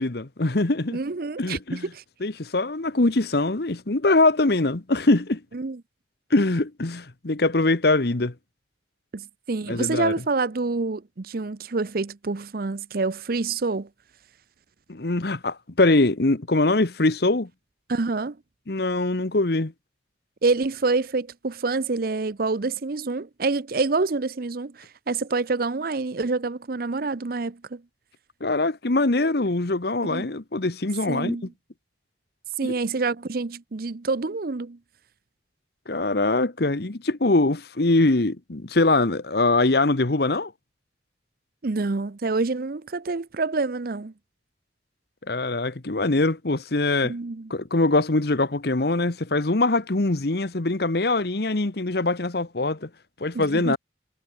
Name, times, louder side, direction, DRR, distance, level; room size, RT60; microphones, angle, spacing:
voice 1, 0.0-1.0 1.4-1.9 2.2-5.4 6.3-8.3 9.7-10.1 14.9-17.5 18.7-19.7 28.4-31.4 32.6-32.7 35.9-40.5 45.3-47.1 47.5-52.9 53.2-53.8, left 2 dB, 60° left, 1.2 m, -23 dB
voice 2, 0.9-2.0 5.5-5.8 9.1-13.9 17.9-18.4 20.4-27.8 30.0-30.3 31.1-31.5 32.6-34.8 41.6-44.1 47.1-47.5 53.3-53.8, right 3 dB, 55° right, 0.7 m, -27 dB
head